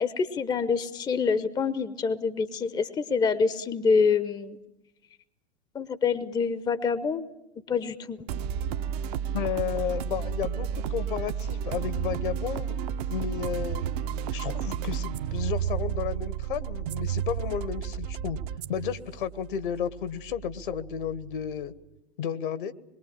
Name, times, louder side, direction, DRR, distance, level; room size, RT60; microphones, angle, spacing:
voice 1, 0.0-4.6 5.7-7.2 7.7-8.3, left 5 dB, 15° left, 14 dB, 0.9 m, -26 dB
sound 1, 8.3-21.7, right 9 dB, 40° right, 0.9 m, -32 dB
voice 2, 9.3-12.8 13.1-13.8 14.3-18.4 18.7-21.7 22.2-22.7, left 9 dB, 55° left, 14 dB, 1.4 m, -32 dB
26.0 x 22.5 x 8.8 m, 0.92 s
figure-of-eight pair, 100°, 31 cm